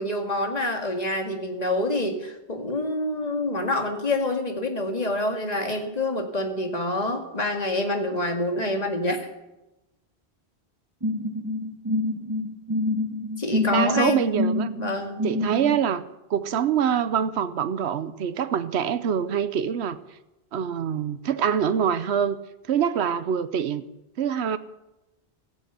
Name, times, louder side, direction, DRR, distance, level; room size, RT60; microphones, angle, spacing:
voice 1, 0.0-9.3 13.4-14.3 14.8-15.2, left 2 dB, 40° left, 4 dB, 2.1 m, -27 dB
sound 1, 11.0-15.8, left 1 dB, 20° right, 2.0 m, -27 dB
voice 2, 13.7-14.7 15.2-16.0 16.3-20.0 20.5-22.4 22.7-23.8 24.2-24.6, right 8 dB, 80° right, 12 dB, 1.0 m, -25 dB
14.5 x 9.7 x 8.2 m, 0.97 s
omnidirectional pair, 1.1 m